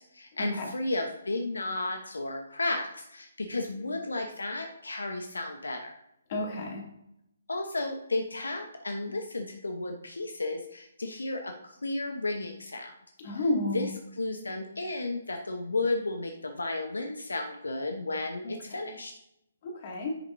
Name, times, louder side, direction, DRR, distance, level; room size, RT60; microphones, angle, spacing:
voice 1, 0.1-5.9 7.5-12.9 13.3-13.4 13.7-19.1, left 2 dB, 85° left, 4 dB, 1.0 m, -33 dB
voice 2, 6.3-6.8 13.2-13.9 18.4-18.5 19.6-20.1, left 2 dB, 40° left, -1 dB, 2.5 m, -31 dB
10.5 x 6.3 x 2.7 m, 0.80 s
figure-of-eight pair, 145°, 0 cm